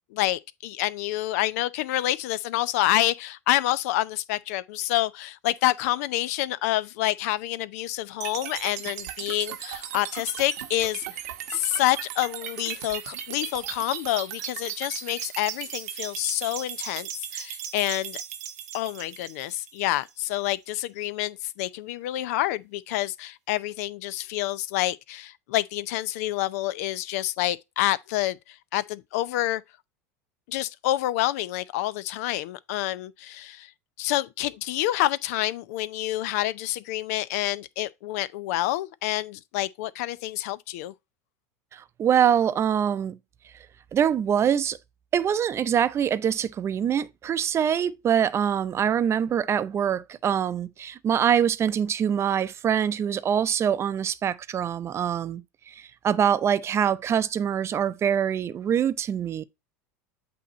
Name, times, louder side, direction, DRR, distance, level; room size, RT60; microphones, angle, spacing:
voice 1, 0.1-11.0 11.5-18.2 18.7-28.4 28.7-29.6 30.5-33.7 34.0-40.9, left 15 dB, 70° left, 0.5 m, -28 dB
sound 1, 8.2-20.2, right 10 dB, 80° right, 1.0 m, -37 dB
voice 2, 41.7-43.2 43.9-44.8 45.1-59.4, right 8 dB, 30° right, 0.6 m, -24 dB
8.4 x 3.0 x 4.0 m
hypercardioid pair, 100°, 8 cm